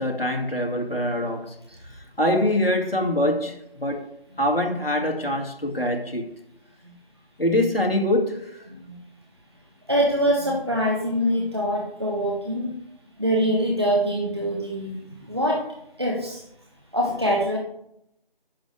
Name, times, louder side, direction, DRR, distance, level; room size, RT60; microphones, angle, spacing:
voice 1, 0.0-1.5 2.2-4.0 4.4-6.3 7.4-8.6, left 1 dB, 75° left, 2.4 m, -24 dB
voice 2, 9.9-12.7 13.2-15.0 15.2-15.7 16.0-16.4 16.9-17.6, equal, 25° right, 1.1 m, -24 dB
11.5 x 8.4 x 3.4 m
figure-of-eight pair, 170°, 29 cm